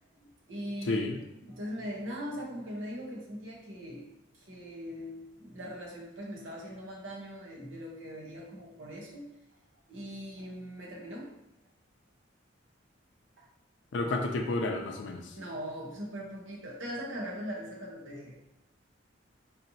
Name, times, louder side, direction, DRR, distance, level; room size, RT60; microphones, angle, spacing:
voice 1, 0.2-1.1 1.4-4.1 4.3-9.3 9.9-11.3 13.4-13.5 15.3-18.4, equal, 80° right, -2 dB, 0.9 m, -40 dB
voice 2, 0.9-1.2 13.9-15.2, left 2 dB, 70° left, 2 dB, 0.4 m, -30 dB
4.2 x 2.8 x 2.7 m, 0.86 s
head